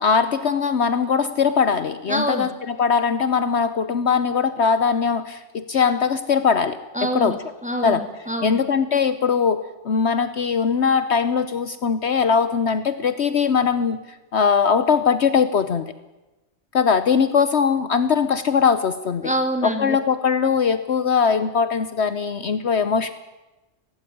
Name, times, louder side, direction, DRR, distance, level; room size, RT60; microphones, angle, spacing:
voice 1, 0.0-7.4 7.8-8.0 8.4-14.0 14.3-15.9 16.7-19.3 19.6-23.1, left 6 dB, 60° left, 12 dB, 1.1 m, -21 dB
voice 2, 2.1-2.5 6.9-8.6 19.2-20.0, right 1 dB, 5° right, 5 dB, 2.4 m, -26 dB
18.5 x 15.5 x 10.0 m, 1.1 s
omnidirectional pair, 1.3 m